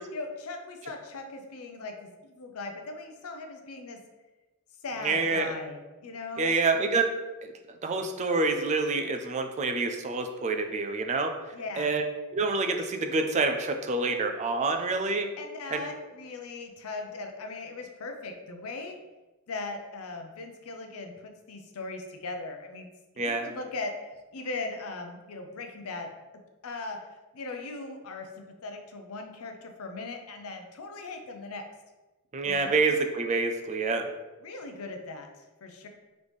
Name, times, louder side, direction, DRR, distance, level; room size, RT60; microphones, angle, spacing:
voice 1, 0.1-4.0 4.8-6.6 11.5-11.9 15.4-19.0 19.5-22.9 23.1-26.1 26.6-27.0 27.3-31.6 32.4-32.8 34.4-35.9, left 3 dB, 80° left, 5 dB, 0.6 m, -39 dB
voice 2, 5.0-5.5 6.4-7.1 7.4-11.3 11.8-12.0 12.3-15.3 15.7-15.8 23.2-23.5 32.3-34.1, right 3 dB, 30° right, 5 dB, 0.3 m, -27 dB
4.0 x 3.1 x 3.4 m, 1.2 s
head